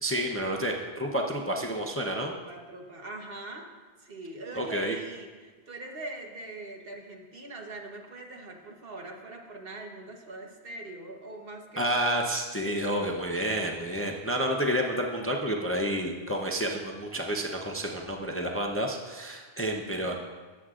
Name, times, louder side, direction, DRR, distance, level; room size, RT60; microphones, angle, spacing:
voice 1, 0.0-2.3 4.5-5.0 11.8-20.2, equal, 15° left, 1 dB, 0.6 m, -30 dB
voice 2, 2.3-3.7 4.0-12.2 19.7-20.2, right 2 dB, 65° right, 1 dB, 1.4 m, -42 dB
19.0 x 8.0 x 2.5 m, 1.4 s
omnidirectional pair, 1.1 m